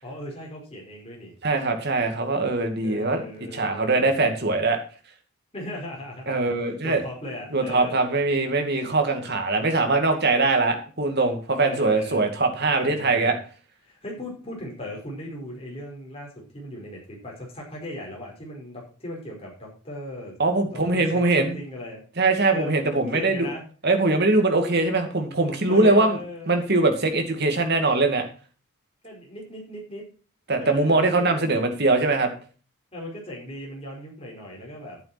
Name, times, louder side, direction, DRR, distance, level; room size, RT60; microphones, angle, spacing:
voice 1, 0.0-1.3 2.8-4.3 5.5-6.5 6.8-8.0 11.6-12.3 12.8-13.4 13.8-20.4 20.7-22.0 22.5-23.6 25.7-26.5 29.0-30.1 30.6-31.3 32.9-35.0, left 1 dB, 25° left, -3 dB, 4.9 m, -38 dB
voice 2, 1.4-3.2 3.5-4.8 6.3-7.0 7.5-13.4 20.4-21.6 22.2-23.5 23.8-26.2 26.5-28.3 30.5-32.3, right 3 dB, 50° right, 5 dB, 2.4 m, -22 dB
12.0 x 8.9 x 4.3 m, 0.37 s
head